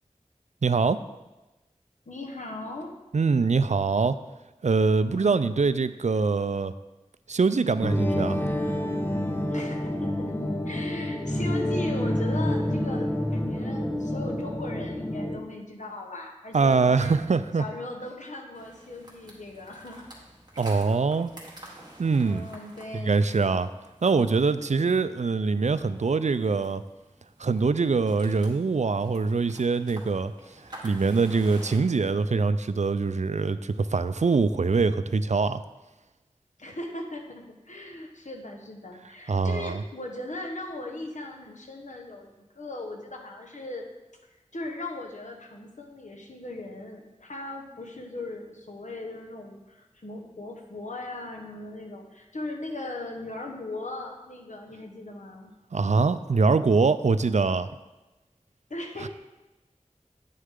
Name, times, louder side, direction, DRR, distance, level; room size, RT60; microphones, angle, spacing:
voice 1, 0.6-1.0 3.1-4.2 4.6-6.7 7.3-8.4 16.5-17.6 20.6-21.3 22.0-22.5 22.9-23.7 24.0-26.8 27.4-30.3 30.8-35.6 39.3-39.8 55.7-57.7 59.0-59.1, right 4 dB, 70° right, 13 dB, 0.4 m, -23 dB
voice 2, 2.1-2.9 5.0-5.4 9.5-17.2 17.6-20.1 22.2-23.3 24.8-25.1 36.6-43.9 44.5-55.5 58.7-59.1, left 2 dB, 75° left, 1 dB, 1.2 m, -38 dB
sound 1, 7.8-15.4, left 1 dB, 15° left, 0.9 m, -28 dB
sound 2, 18.5-31.8, right 1 dB, 35° right, 2.1 m, -49 dB
9.5 x 6.5 x 3.7 m, 1.1 s
wide cardioid pair, 45°, 13 cm